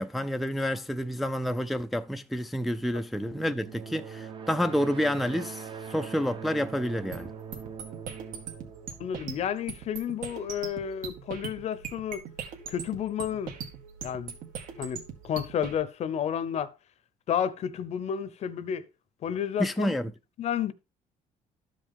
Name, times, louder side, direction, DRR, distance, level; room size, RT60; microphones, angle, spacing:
voice 1, 0.0-5.6 5.9-7.3 19.6-20.1, equal, ahead, 0.4 m, -29 dB
sound 1, 3.2-9.9, right 7 dB, 35° right, 0.8 m, -42 dB
sound 2, 7.1-15.7, right 7 dB, 75° right, 1.8 m, -41 dB
voice 2, 9.0-12.2 12.7-13.5 14.0-14.3 14.8-16.7 17.3-18.8 19.2-20.0 20.4-20.7, left 9 dB, 50° left, 0.7 m, -31 dB
12.5 x 5.1 x 3.6 m
cardioid pair, 135°, 14 cm